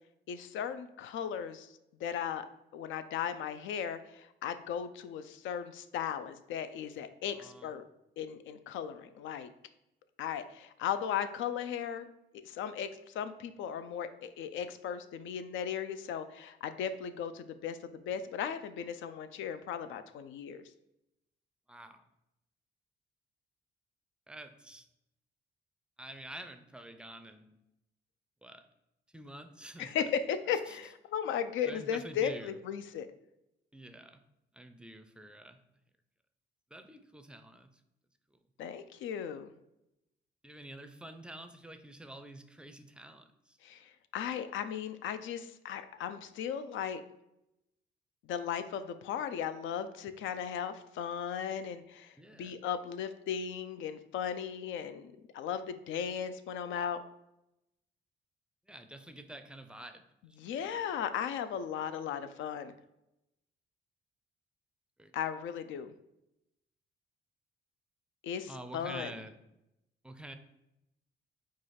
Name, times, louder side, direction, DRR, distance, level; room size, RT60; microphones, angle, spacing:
voice 1, 0.3-1.7 2.0-2.5 2.7-7.8 8.2-9.5 10.2-12.1 12.4-20.6 29.8-33.1 38.6-39.5 43.6-47.0 48.3-57.0 60.4-62.7 65.1-65.9 68.2-69.1, left 8 dB, 80° left, 11 dB, 0.4 m, -36 dB
voice 2, 7.3-7.8 21.7-22.0 24.3-24.9 26.0-27.6 28.4-28.7 29.1-30.1 30.5-30.8 31.6-32.6 33.7-34.2 34.5-35.6 36.7-37.7 38.3-38.4 40.4-43.6 52.2-52.5 58.7-61.0 65.0-65.1 68.5-69.4 70.0-70.4, right 1 dB, 5° right, 8 dB, 0.4 m, -48 dB
4.7 x 2.4 x 4.2 m, 0.87 s
cardioid pair, 90°, 20 cm